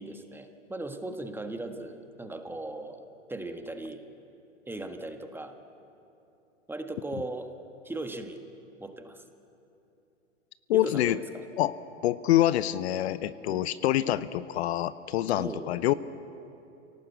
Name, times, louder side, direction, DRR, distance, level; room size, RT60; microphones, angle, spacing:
voice 1, 0.0-4.0 4.7-5.5 6.7-7.5 7.8-8.4 8.8-9.2 10.7-11.4 13.5-13.7 15.4-15.7, right 2 dB, 5° right, 6 dB, 1.5 m, -38 dB
voice 2, 10.7-11.2 11.6-11.7 12.0-15.9, left 13 dB, 55° left, 15 dB, 0.8 m, -26 dB
27.0 x 18.0 x 8.2 m, 2.9 s
hypercardioid pair, 110°, 38 cm